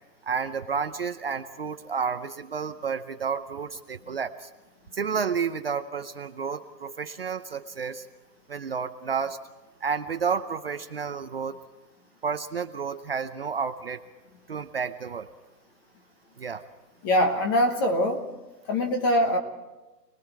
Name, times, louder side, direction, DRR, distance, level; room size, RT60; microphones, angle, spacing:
voice 1, 0.2-4.5 4.9-8.1 8.5-9.4 9.8-11.6 12.2-14.0 14.5-15.3 16.4-16.6, right 6 dB, 35° right, 8 dB, 0.7 m, -31 dB
voice 2, 17.0-18.3 18.7-19.4, equal, 15° left, 5 dB, 1.1 m, -23 dB
29.0 x 20.5 x 4.6 m, 1.1 s
hypercardioid pair, 165°, 50 cm